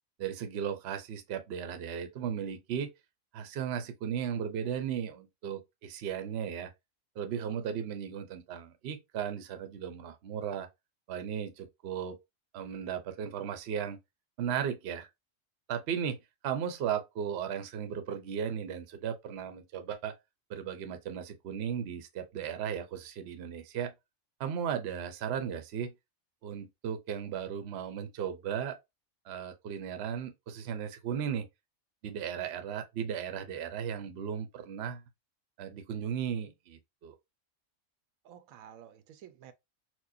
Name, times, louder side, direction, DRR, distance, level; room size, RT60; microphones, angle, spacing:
voice 1, 0.2-2.9 3.3-6.7 7.2-10.7 11.1-12.2 12.5-14.0 14.4-15.1 15.7-16.2 16.4-20.1 20.5-23.9 24.4-25.9 26.4-28.8 29.3-31.5 32.0-35.0 35.6-37.1, right 8 dB, 60° right, 0.8 m, -36 dB
voice 2, 7.3-7.8 38.2-39.5, right 9 dB, 85° right, 1.0 m, -52 dB
4.4 x 2.2 x 2.6 m
omnidirectional pair, 1.4 m